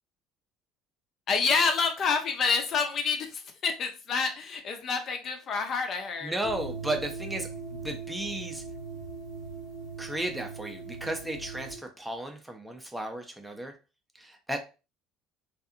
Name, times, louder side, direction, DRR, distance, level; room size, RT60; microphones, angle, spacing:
voice 1, 1.3-6.3, left 5 dB, 40° left, 5 dB, 0.6 m, -28 dB
voice 2, 6.2-8.6 10.0-13.7 14.1-14.6, right 1 dB, 10° right, 4 dB, 0.6 m, -34 dB
sound 1, 6.4-11.8, right 4 dB, 75° left, 0.9 m, -40 dB
2.6 x 2.4 x 2.5 m, 0.31 s
figure-of-eight pair, 60°, 0 cm